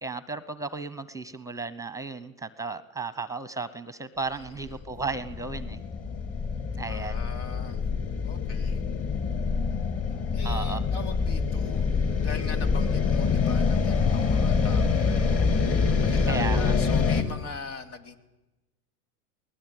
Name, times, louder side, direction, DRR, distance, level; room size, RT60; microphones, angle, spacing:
voice 1, 0.0-5.8 6.8-7.2 10.4-10.8 16.2-16.7, right 4 dB, 5° right, 15 dB, 0.8 m, -34 dB
sound 1, 4.7-17.2, left 5 dB, 30° left, 3.3 m, -25 dB
voice 2, 6.9-7.8 8.2-8.8 10.3-11.9 12.2-15.5 16.0-18.2, left 4 dB, 75° left, 7 dB, 3.3 m, -41 dB
21.5 x 19.5 x 9.3 m, 1.0 s
hypercardioid pair, 120°, 45 cm